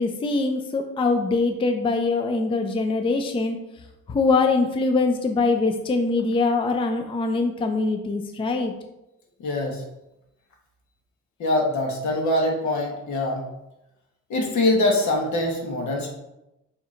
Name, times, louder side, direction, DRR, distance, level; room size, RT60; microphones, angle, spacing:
voice 1, 0.0-3.6 4.1-8.7, left 3 dB, 20° left, 5 dB, 0.4 m, -23 dB
voice 2, 9.4-9.8 11.4-13.5 14.3-16.1, left 2 dB, 70° left, 0 dB, 1.2 m, -23 dB
7.1 x 2.9 x 2.5 m, 0.91 s
cardioid pair, 90°, 30 cm